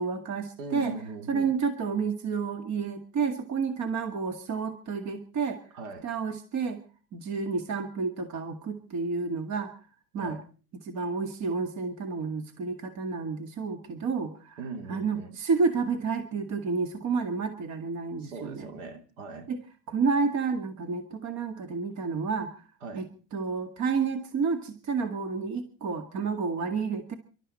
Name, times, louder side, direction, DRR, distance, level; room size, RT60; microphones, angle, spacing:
voice 1, 0.0-0.9 1.3-5.6 6.0-6.8 7.1-9.7 10.1-10.4 10.8-14.6 14.9-18.7 19.5-19.6 19.9-22.5 22.9-23.1 23.3-27.1, right 5 dB, 40° right, 2.1 m, -30 dB
voice 2, 0.6-1.6 5.7-6.1 10.2-10.4 14.6-15.4 18.2-19.5 22.8-23.0, right 4 dB, 65° right, 3.0 m, -40 dB
26.5 x 12.5 x 4.3 m
supercardioid pair, 110°, 42 cm